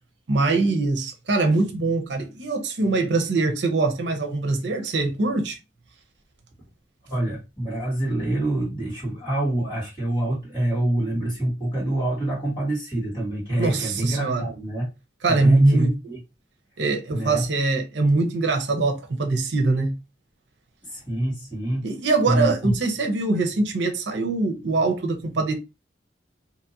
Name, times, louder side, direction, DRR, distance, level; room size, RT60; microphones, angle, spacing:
voice 1, 0.3-5.6 13.6-14.5 15.2-15.9 16.8-19.9 21.8-25.5, right 3 dB, 70° right, 0.7 m, -22 dB
voice 2, 7.0-14.9 15.3-16.2 17.1-17.5 20.8-21.9 22.3-22.7, right 1 dB, 25° left, 1.9 m, -26 dB
2.9 x 2.5 x 2.7 m
head